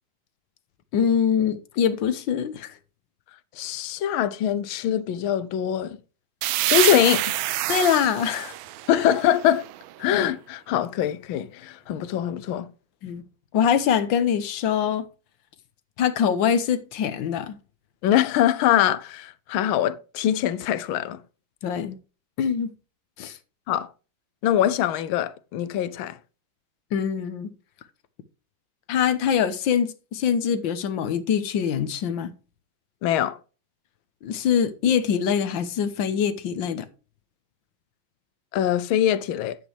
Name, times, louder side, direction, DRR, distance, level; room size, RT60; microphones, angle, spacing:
voice 1, 0.9-2.7 7.7-8.5 8.9-9.1 13.0-13.2 13.5-15.1 16.0-17.5 21.6-22.0 22.4-22.7 23.2-23.4 26.9-27.5 28.9-32.3 34.2-36.9, left 8 dB, 70° left, 1.7 m, -24 dB
voice 2, 3.6-6.0 6.7-7.2 8.9-9.6 10.0-12.7 18.0-21.2 23.7-23.9 24.4-26.2 33.0-33.4 38.5-39.6, left 10 dB, 90° left, 1.5 m, -23 dB
sound 1, 6.4-10.0, right 15 dB, 90° right, 1.5 m, -27 dB
10.5 x 8.4 x 3.3 m
omnidirectional pair, 2.2 m